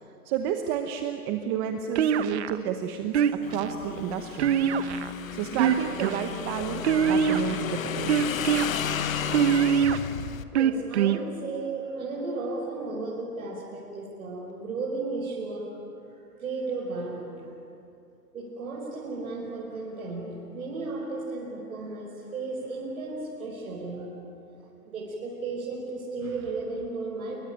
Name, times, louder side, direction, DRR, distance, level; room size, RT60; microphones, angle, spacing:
voice 1, 0.2-3.2 3.5-4.6 5.3-8.3, right 8 dB, 15° right, 6 dB, 0.8 m, -31 dB
sound 1, 2.0-2.6 3.1-3.7 4.4-5.1 5.5-6.2 6.8-7.5 8.1-8.7 9.3-10.0 10.5-11.2, right 8 dB, 45° right, 1.3 m, -23 dB
Motorcycle / Engine, 3.4-10.4, left 8 dB, 60° left, 1.5 m, -33 dB
voice 2, 10.5-17.5 18.3-24.2 24.9-27.4, right 3 dB, 60° right, -3 dB, 6.0 m, -34 dB
28.5 x 22.5 x 9.2 m, 2.6 s
hypercardioid pair, 145°, 46 cm